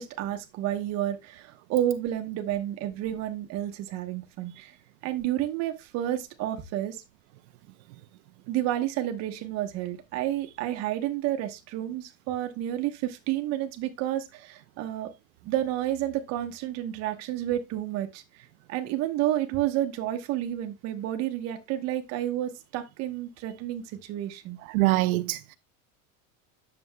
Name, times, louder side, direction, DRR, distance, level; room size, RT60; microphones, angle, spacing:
voice 1, 0.0-4.8 5.0-7.0 8.5-15.1 15.4-24.6, right 12 dB, 35° right, 1.0 m, -30 dB
voice 2, 24.6-25.5, right 20 dB, 75° right, 0.6 m, -24 dB
9.2 x 6.9 x 2.2 m
supercardioid pair, 170°, 43 cm